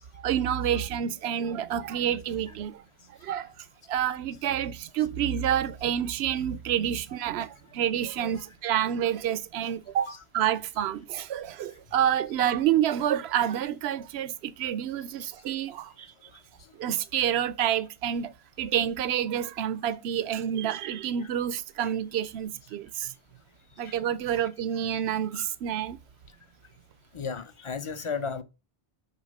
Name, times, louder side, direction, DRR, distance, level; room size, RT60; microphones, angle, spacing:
voice 1, 0.1-2.8 3.2-3.5 3.9-16.1 16.8-23.1 23.8-26.0, right 10 dB, 80° right, 0.8 m, -28 dB
voice 2, 27.1-28.4, left 5 dB, 35° left, 0.6 m, -34 dB
6.5 x 4.6 x 5.2 m
omnidirectional pair, 1.1 m